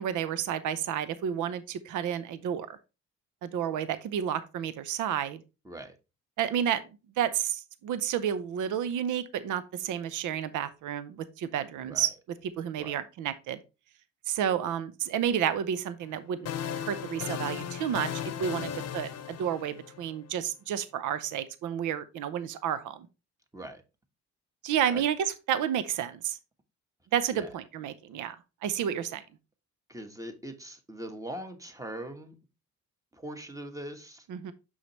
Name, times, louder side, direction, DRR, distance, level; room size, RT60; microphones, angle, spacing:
voice 1, 0.0-2.7 3.4-5.4 6.4-6.8 7.2-12.1 12.6-13.6 14.3-16.5 16.9-23.1 24.6-26.4 27.1-28.4 28.6-29.2 34.3-34.5, right 9 dB, 80° right, 0.7 m, -31 dB
voice 2, 5.6-6.0 11.8-12.1 12.8-13.0 18.6-18.9 23.5-23.8 24.9-25.0 27.3-27.5 29.9-32.4 33.1-34.3, right 1 dB, 10° right, 1.3 m, -41 dB
sound 1, 16.0-20.2, left 9 dB, 55° left, 0.8 m, -36 dB
6.2 x 5.6 x 3.0 m
cardioid pair, 90°, 30 cm